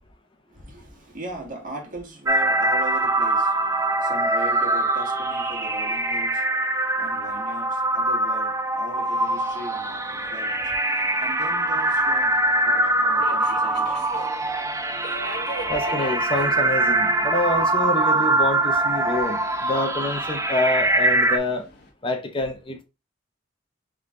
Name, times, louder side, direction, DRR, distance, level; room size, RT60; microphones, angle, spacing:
voice 1, 0.5-14.3 15.1-15.2, right 2 dB, 45° right, 1.7 m, -39 dB
sound 1, 2.3-21.4, right 2 dB, 15° right, 0.5 m, -23 dB
Subway metro underground, 9.1-21.9, left 1 dB, 60° left, 1.2 m, -43 dB
voice 2, 15.7-21.6 22.0-22.8, left 1 dB, 30° left, 0.6 m, -26 dB
3.7 x 3.2 x 3.6 m
head